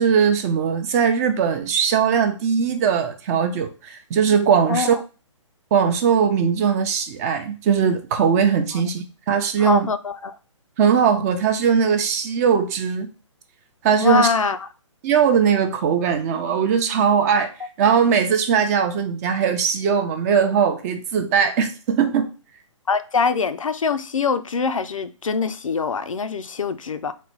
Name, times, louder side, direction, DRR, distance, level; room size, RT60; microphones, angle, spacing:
voice 1, 0.0-5.0 5.7-9.9 10.8-13.1 13.8-14.3 15.0-17.5 17.8-22.3, right 7 dB, 30° right, 0.5 m, -20 dB
voice 2, 4.7-5.0 8.7-8.8 9.6-10.3 14.0-14.7 22.9-27.1, left 5 dB, 90° left, 0.4 m, -23 dB
4.0 x 2.1 x 4.5 m
hypercardioid pair, 135°, 16 cm